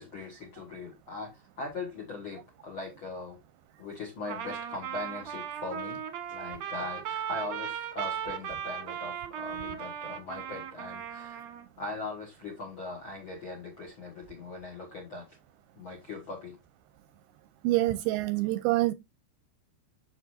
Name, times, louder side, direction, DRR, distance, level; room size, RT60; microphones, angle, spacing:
voice 1, 0.0-3.4 3.8-6.0 6.3-11.5 11.8-15.3 15.7-16.6, left 3 dB, 60° left, 1.3 m, -40 dB
Trumpet, 4.3-11.6, right 9 dB, 65° right, 1.7 m, -37 dB
voice 2, 17.6-18.9, right 17 dB, 80° right, 2.3 m, -26 dB
8.2 x 7.2 x 2.6 m
omnidirectional pair, 4.7 m